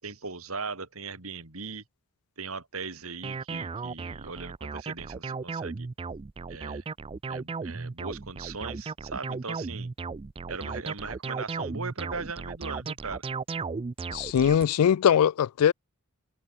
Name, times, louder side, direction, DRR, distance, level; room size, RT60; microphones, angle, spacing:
voice 1, 0.0-1.8 2.4-5.9 6.5-6.8 7.3-9.9 10.5-13.2, right 4 dB, 70° right, 3.5 m, -38 dB
sound 1, 3.2-14.7, right 4 dB, 25° right, 0.4 m, -35 dB
voice 2, 14.1-15.7, left 9 dB, 80° left, 0.3 m, -21 dB
head